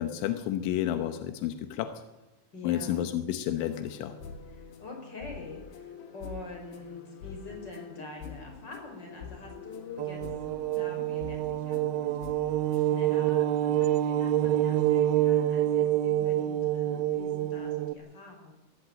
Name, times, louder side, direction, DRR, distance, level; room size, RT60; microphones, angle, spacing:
voice 1, 0.0-1.9 2.6-4.2, left 11 dB, 90° left, 9 dB, 3.5 m, -30 dB
voice 2, 2.5-3.1 4.5-10.2 10.8-12.2 12.7-18.5, left 2 dB, 25° left, 2 dB, 5.3 m, -45 dB
sound 1, 3.7-13.0, left 6 dB, 65° left, 3.7 m, -46 dB
sound 2, 10.0-17.9, right 12 dB, 80° right, 2.2 m, -27 dB
20.5 x 14.5 x 8.9 m, 0.98 s
omnidirectional pair, 5.3 m